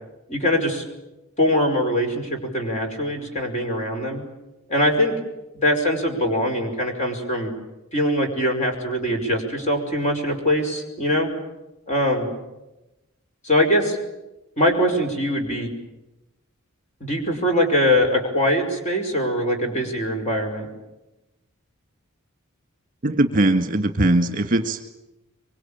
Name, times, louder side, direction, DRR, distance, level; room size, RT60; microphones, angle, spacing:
voice 1, 0.3-0.8 1.4-4.2 4.7-5.1 5.5-7.5 7.9-11.3 11.9-12.3 13.4-14.0 14.6-15.7 17.0-20.7, equal, 35° left, 3 dB, 5.4 m, -22 dB
voice 2, 23.0-24.9, right 1 dB, 40° right, 7 dB, 1.8 m, -20 dB
24.5 x 24.0 x 8.8 m, 0.98 s
head